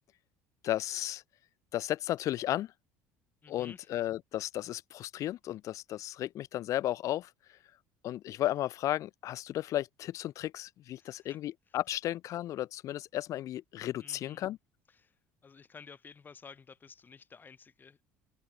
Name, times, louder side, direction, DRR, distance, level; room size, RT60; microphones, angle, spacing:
voice 1, 0.6-1.2 1.7-2.7 3.5-7.3 8.0-14.6, left 13 dB, 55° left, 0.6 m, -34 dB
voice 2, 3.4-3.9 11.0-11.4 11.7-11.8 14.0-14.5 14.9-18.0, left 5 dB, 30° left, 1.5 m, -53 dB
supercardioid pair, 80°, 6 cm